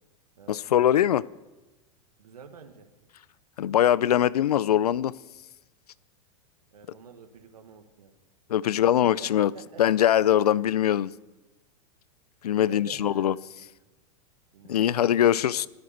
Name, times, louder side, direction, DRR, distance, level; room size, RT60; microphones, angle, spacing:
voice 1, 0.5-1.2 3.6-5.1 8.5-9.5 9.8-11.1 12.4-13.3 14.7-15.7, left 11 dB, 85° left, 21 dB, 0.4 m, -22 dB
voice 2, 2.2-2.9 6.7-8.1 8.8-9.8 10.9-11.0 12.6-13.9 14.5-15.5, right 6 dB, 85° right, 6 dB, 1.5 m, -48 dB
13.0 x 8.1 x 9.1 m, 1.1 s
hypercardioid pair, 110°, 19 cm